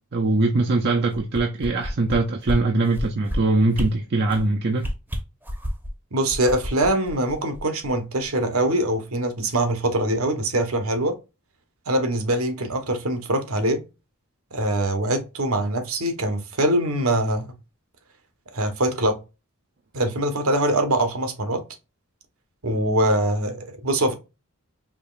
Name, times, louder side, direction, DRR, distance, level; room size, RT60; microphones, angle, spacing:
voice 1, 0.1-4.9, right 2 dB, 50° right, 0.6 m, -22 dB
sound 1, 1.1-2.2 2.5-2.6 2.9-3.4 3.7-3.9 4.3-4.5 4.8-5.9 6.3-7.9 8.2-8.3, equal, 10° right, 0.8 m, -29 dB
voice 2, 6.1-11.2 11.9-13.8 14.5-17.5 18.5-19.2 19.9-21.6 22.6-24.1, right 1 dB, 70° right, 1.0 m, -23 dB
5.0 x 3.0 x 2.4 m
head